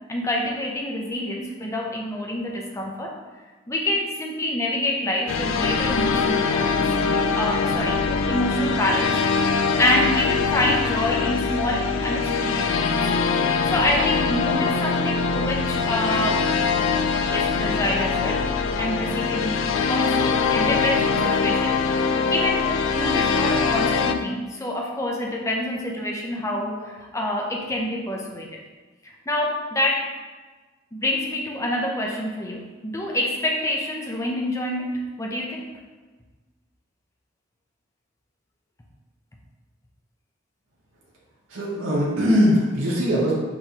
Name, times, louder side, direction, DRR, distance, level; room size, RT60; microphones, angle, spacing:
voice 1, 0.1-3.2 3.7-6.8 7.3-13.0 13.7-16.5 17.3-18.5 18.8-28.6 29.0-30.1 30.9-35.7, left 1 dB, 15° left, 0 dB, 0.5 m, -27 dB
sound 1, 5.3-24.2, left 5 dB, 75° left, 0.3 m, -23 dB
voice 2, 41.5-43.3, equal, 80° right, -5 dB, 0.8 m, -21 dB
5.4 x 3.0 x 2.7 m, 1.3 s
head